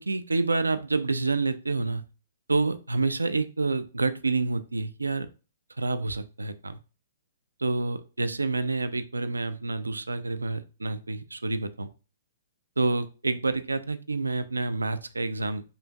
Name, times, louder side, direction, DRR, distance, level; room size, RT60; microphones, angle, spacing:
voice 1, 0.0-2.1 2.5-5.3 5.8-6.8 7.6-11.9 12.8-15.6, right 3 dB, 80° right, 12 dB, 0.3 m, -28 dB
5.0 x 2.5 x 2.3 m, 0.33 s
figure-of-eight pair, 115°, 0 cm